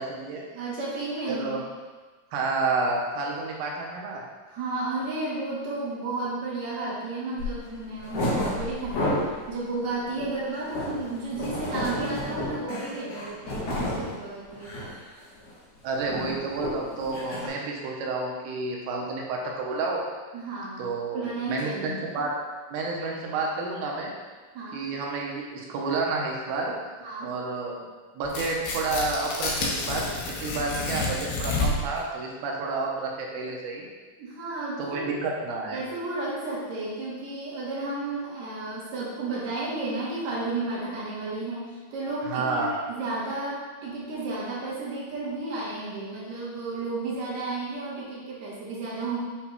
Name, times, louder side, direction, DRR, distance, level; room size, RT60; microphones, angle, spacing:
voice 1, 0.0-0.5 1.3-1.6 2.3-4.2 15.8-20.0 20.8-22.3 22.7-24.1 24.7-26.7 27.2-27.9 28.2-33.9 34.8-35.8 42.3-42.8, right 3 dB, 85° right, -1 dB, 2.7 m, -30 dB
voice 2, 0.5-1.6 4.5-14.9 20.3-22.0 24.5-24.8 27.0-27.3 34.2-35.2 35.7-49.2, right 2 dB, 65° right, -6 dB, 2.0 m, -33 dB
sound 1, 7.4-7.6 7.9-9.4 9.8-14.1 14.5-15.0 15.2-15.5 15.8-17.5, left 1 dB, 55° left, 2.2 m, -31 dB
Tearing, 28.2-32.0, left 2 dB, 80° left, 2.7 m, -29 dB
7.3 x 5.7 x 2.3 m, 1.4 s
omnidirectional pair, 4.4 m